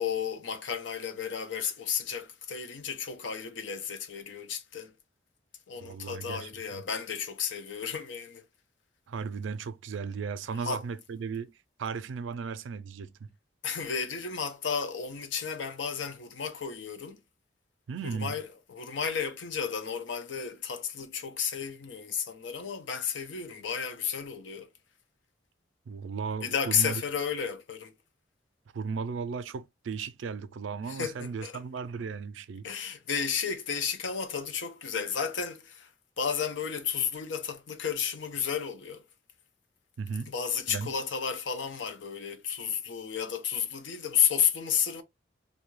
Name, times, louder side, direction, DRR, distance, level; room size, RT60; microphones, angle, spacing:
voice 1, 0.0-4.9 5.7-8.4 10.6-10.8 13.6-17.2 18.0-24.7 26.4-27.9 30.9-31.6 32.6-35.9 36.2-39.0 40.3-45.0, left 7 dB, 75° left, 0.6 m, -32 dB
voice 2, 5.8-6.8 9.1-11.5 11.8-13.3 17.9-18.4 25.9-27.0 28.7-32.7 40.0-40.3 40.7-40.9, right 5 dB, 85° right, 0.4 m, -36 dB
2.6 x 2.3 x 3.0 m
head